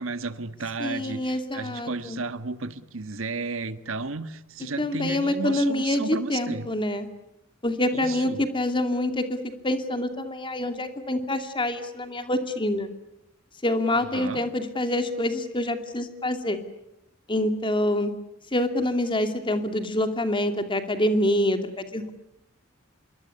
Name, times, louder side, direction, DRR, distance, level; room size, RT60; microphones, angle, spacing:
voice 1, 0.0-6.7 7.9-8.4 13.9-14.4, right 3 dB, 80° right, 12 dB, 1.5 m, -33 dB
voice 2, 0.8-2.2 4.8-7.1 7.6-12.9 13.6-16.6 17.3-18.1 18.5-22.1, left 1 dB, 25° left, 7 dB, 2.6 m, -26 dB
26.5 x 22.5 x 9.7 m, 0.86 s
head